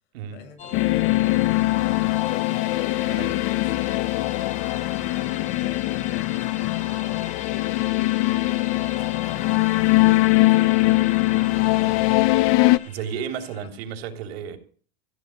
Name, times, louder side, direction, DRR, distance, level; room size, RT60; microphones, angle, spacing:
voice 1, 0.3-2.7 6.3-12.5 13.4-13.7, left 4 dB, 60° left, 6.1 m, -49 dB
sound 1, 0.6-13.7, left 8 dB, 25° left, 1.7 m, -39 dB
sound 2, 0.7-12.8, left 20 dB, 40° left, 0.7 m, -21 dB
voice 2, 12.8-14.6, right 8 dB, 75° right, 3.3 m, -33 dB
16.0 x 7.7 x 8.8 m
supercardioid pair, 160°, 31 cm